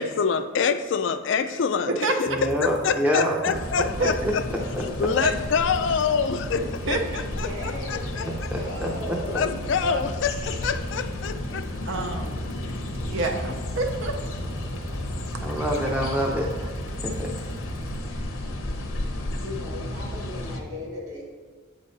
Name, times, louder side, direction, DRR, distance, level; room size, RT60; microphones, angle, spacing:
voice 1, 0.0-2.3 2.6-4.4 4.8-7.0 7.4-7.5 7.9-8.5 9.3-12.1, left 6 dB, 60° left, 0.4 m, -26 dB
sound 1, 2.0-18.0, right 1 dB, 85° right, 1.1 m, -41 dB
voice 2, 2.3-3.3 4.5-4.8 8.5-9.2 15.4-16.7 17.0-17.3, equal, 5° right, 0.6 m, -26 dB
sound 2, 3.5-20.6, left 1 dB, 90° left, 0.9 m, -33 dB
voice 3, 3.8-4.1 5.1-5.4 6.9-7.3 9.8-10.0 11.9-12.5 13.0-14.2, right 3 dB, 65° right, 0.6 m, -28 dB
voice 4, 7.3-9.7 19.3-21.2, left 2 dB, 35° right, 1.9 m, -37 dB
7.5 x 5.3 x 4.0 m
head